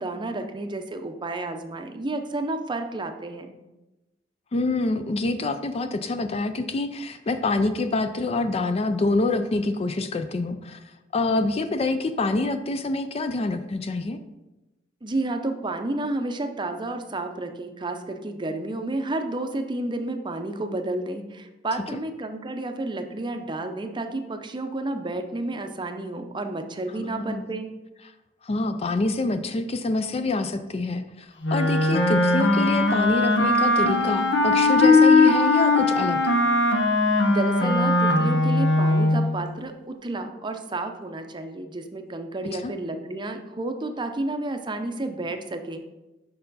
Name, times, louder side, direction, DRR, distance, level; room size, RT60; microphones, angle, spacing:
voice 1, 0.0-3.6 15.0-27.7 37.3-45.8, right 2 dB, 25° right, 6 dB, 0.6 m, -31 dB
voice 2, 4.5-10.8 11.1-14.2 27.0-27.5 28.5-36.2 42.6-42.7, left 2 dB, 35° left, 9 dB, 0.4 m, -26 dB
Wind instrument woodwind instrument, 31.4-39.3, left 2 dB, 80° left, 0.9 m, -19 dB
6.7 x 5.4 x 4.0 m, 1.0 s
head